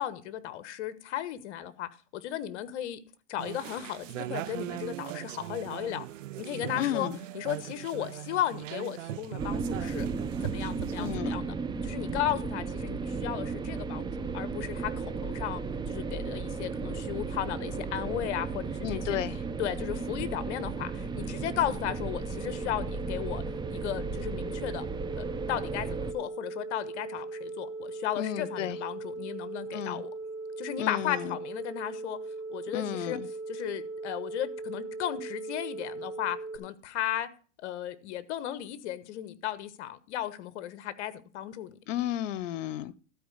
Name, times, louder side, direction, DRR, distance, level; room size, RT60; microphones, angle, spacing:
voice 1, 0.0-3.0 3.3-6.1 6.4-7.1 7.3-10.1 10.4-11.5 11.8-14.0 14.3-15.6 15.9-19.2 19.6-23.4 23.7-24.9 25.2-30.1 30.6-32.2 32.5-33.2 33.5-37.3 37.6-41.8, left 12 dB, 65° left, 1.3 m, -35 dB
sound 1, 3.4-11.2, right 14 dB, 90° right, 0.7 m, -39 dB
voice 2, 6.7-7.2 11.0-11.4 18.8-19.4 28.1-28.8 29.7-30.0 30.8-31.4 32.7-33.3 41.9-43.0, left 12 dB, 90° left, 0.8 m, -33 dB
sound 2, 9.4-26.1, right 4 dB, 10° right, 0.7 m, -35 dB
sound 3, 19.6-36.6, right 3 dB, 30° right, 3.6 m, -40 dB
13.0 x 4.7 x 8.1 m
supercardioid pair, 130°, 37 cm